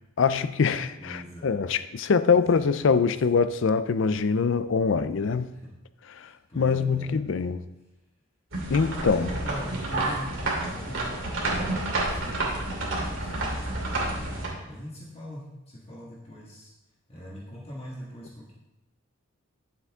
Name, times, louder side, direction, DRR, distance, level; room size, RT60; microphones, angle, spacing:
voice 1, 0.2-5.5 6.6-7.6 8.7-9.3, left 5 dB, 55° left, 0.4 m, -23 dB
voice 2, 1.0-1.6 2.3-3.1 5.5-5.7 6.1-7.3 9.0-16.7 17.1-18.5, equal, 25° left, 1.6 m, -41 dB
sound 1, 8.5-14.5, right 2 dB, 60° right, 2.5 m, -30 dB
10.5 x 7.2 x 3.6 m
head